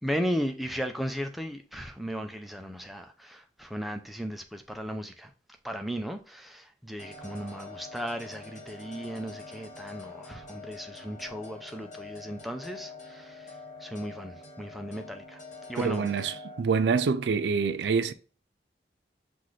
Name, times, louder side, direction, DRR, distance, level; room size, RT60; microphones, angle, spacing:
voice 1, 0.0-5.3 5.6-15.4 15.7-16.1, equal, ahead, 0.4 m, -36 dB
sound 1, 7.0-16.6, left 3 dB, 40° left, 0.9 m, -45 dB
voice 2, 15.8-18.1, right 5 dB, 75° right, 0.4 m, -26 dB
5.7 x 2.5 x 3.2 m
head